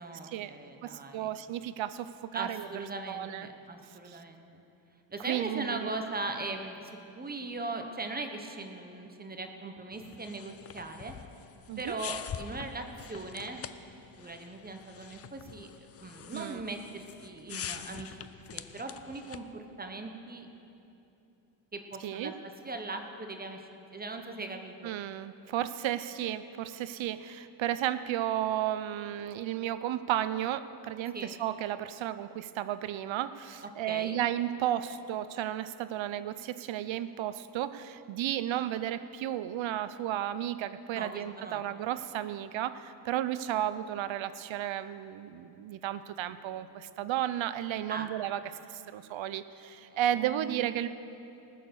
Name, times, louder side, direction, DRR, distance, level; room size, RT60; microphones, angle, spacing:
voice 1, 0.0-1.3 2.3-4.5 5.1-6.9 7.1-11.1 11.8-13.6 14.2-15.7 16.0-20.5 21.7-22.3 22.6-24.9 31.1-31.3 33.8-34.2 40.9-41.7 47.9-48.1 49.9-50.9, right 2 dB, 20° right, 5 dB, 0.9 m, -39 dB
voice 2, 0.8-2.7 3.1-3.5 4.1-4.2 5.3-5.9 11.7-12.0 16.3-16.6 22.0-22.3 24.8-48.4 48.7-50.9, right 12 dB, 90° right, 13 dB, 0.7 m, -33 dB
sound 1, 9.9-19.5, left 8 dB, 35° left, 0.4 m, -45 dB
19.0 x 6.7 x 6.8 m, 2.8 s
wide cardioid pair, 145°, 45 cm